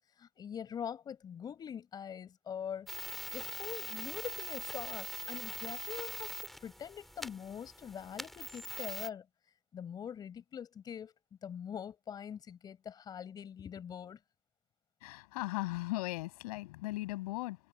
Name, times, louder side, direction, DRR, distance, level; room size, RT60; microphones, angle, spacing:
voice 1, 0.2-2.9 3.3-9.3 9.7-11.1 11.4-14.2, left 8 dB, 20° left, 7.2 m, -43 dB
sound 1, 2.9-9.1, equal, ahead, 5.3 m, -42 dB
voice 2, 15.0-17.6, left 20 dB, 85° left, 7.8 m, -37 dB
cardioid pair, 175°, 19 cm